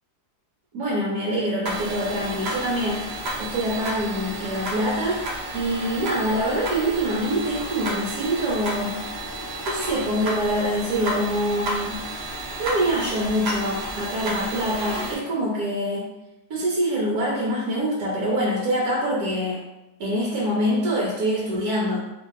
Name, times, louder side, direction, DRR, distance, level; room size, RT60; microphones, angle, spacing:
voice 1, 0.7-3.1 3.4-5.3 5.5-9.1 9.7-12.1 12.6-16.1 16.5-19.6 20.0-22.0, equal, 75° right, -4 dB, 1.2 m, -25 dB
sound 1, 1.7-15.2, right 1 dB, 55° right, 0.7 m, -32 dB
2.7 x 2.6 x 3.9 m, 0.94 s
omnidirectional pair, 1.7 m